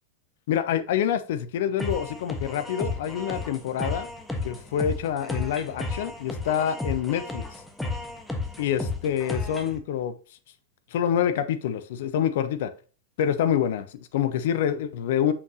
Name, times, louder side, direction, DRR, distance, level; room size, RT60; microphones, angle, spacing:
voice 1, 0.5-4.1 4.4-7.4 8.6-10.1 10.9-12.7 13.2-15.3, left 9 dB, 55° left, 0.5 m, -26 dB
sound 1, 1.8-9.8, left 2 dB, 5° left, 1.1 m, -33 dB
6.4 x 5.7 x 2.7 m
figure-of-eight pair, 90°, 0 cm